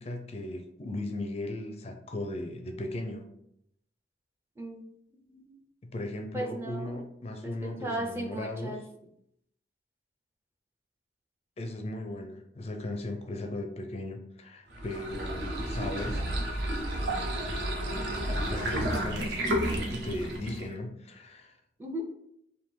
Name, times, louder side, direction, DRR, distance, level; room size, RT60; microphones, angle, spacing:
voice 1, 0.0-3.3 5.8-8.8 11.6-16.2 17.5-17.9 18.4-21.6, left 1 dB, 35° left, 5 dB, 0.4 m, -37 dB
voice 2, 5.2-5.6 6.3-7.0 7.4-8.8 18.0-18.4 21.8-22.0, right 1 dB, 15° right, 2 dB, 0.5 m, -37 dB
sound 1, 14.7-20.7, right 1 dB, 65° right, 0.8 m, -31 dB
3.5 x 2.7 x 4.4 m, 0.76 s
head